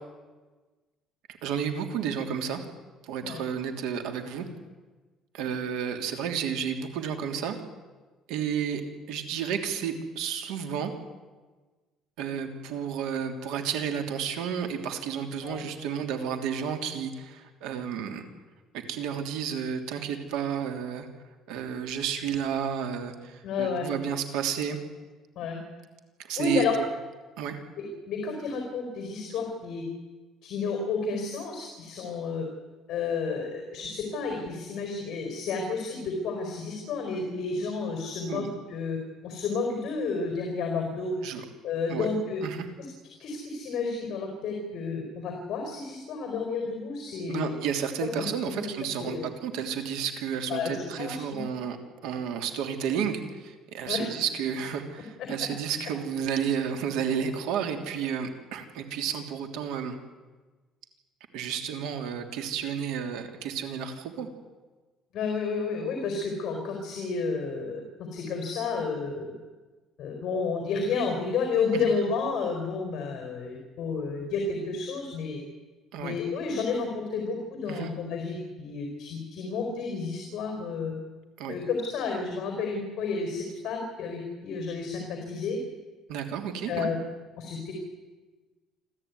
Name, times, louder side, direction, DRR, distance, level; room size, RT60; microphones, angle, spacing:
voice 1, 1.4-2.6 3.0-4.4 5.3-7.6 8.3-8.8 9.1-10.9 12.2-18.3 18.7-21.1 21.5-24.8 26.2-26.6 27.4-27.6 38.3-38.5 41.2-41.4 41.9-42.1 42.4-42.6 47.3-51.8 52.0-59.9 61.3-64.3 71.7-71.9 75.9-76.2 77.7-77.9 81.4-81.6 86.1-86.9, right 7 dB, 85° right, 6 dB, 3.1 m, -31 dB
voice 2, 23.4-23.9 25.3-25.6 26.4-26.8 27.8-29.8 30.4-32.4 32.9-39.0 39.2-41.1 41.6-42.4 42.8-42.9 43.2-47.5 48.2-48.7 49.0-49.2 50.5-51.4 53.9-54.0 55.2-55.3 65.1-69.3 70.0-75.4 76.0-80.9 81.5-85.6 86.7-87.0 87.4-87.7, left 4 dB, 50° left, 3 dB, 4.5 m, -31 dB
27.0 x 14.0 x 9.5 m, 1.3 s
cardioid pair, 160°, 0 cm